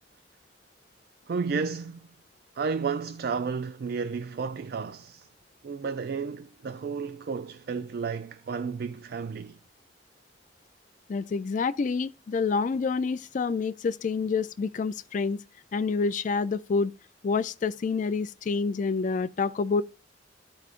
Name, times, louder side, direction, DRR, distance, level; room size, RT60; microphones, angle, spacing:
voice 1, 1.3-2.1 2.6-5.3 5.6-9.6, right 5 dB, 60° right, 0.4 m, -32 dB
voice 2, 11.1-15.4 15.7-16.9 17.2-19.8, left 4 dB, 45° left, 0.4 m, -27 dB
14.0 x 4.8 x 2.5 m
head